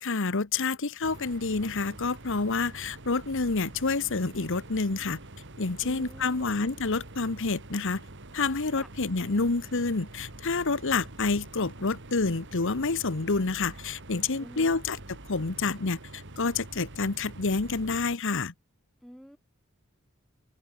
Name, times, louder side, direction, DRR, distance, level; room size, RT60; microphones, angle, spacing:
voice 1, 0.0-5.2 5.6-8.0 8.3-15.0 15.3-18.5, left 3 dB, 60° left, 1.2 m, -28 dB
sound 1, 1.0-18.2, right 2 dB, 60° right, 2.7 m, -46 dB
voice 2, 5.8-6.6 8.8-8.9 14.4-14.8 19.0-19.4, equal, ahead, 7.0 m, -48 dB
open air
head